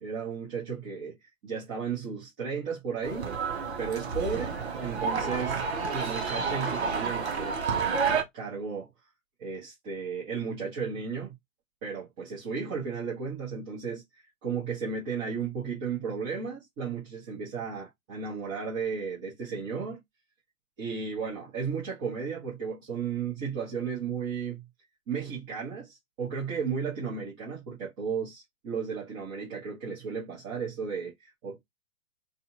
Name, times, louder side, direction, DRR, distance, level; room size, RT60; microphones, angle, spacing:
voice 1, 0.0-3.3 3.8-5.6 5.9-8.9 9.4-11.3 11.8-20.0 20.8-24.6 25.1-31.6, right 6 dB, 25° right, 1.3 m, -34 dB
sound 1, 3.0-8.2, right 5 dB, 55° right, 1.1 m, -30 dB
4.1 x 2.5 x 2.7 m
figure-of-eight pair, 120°, 40 cm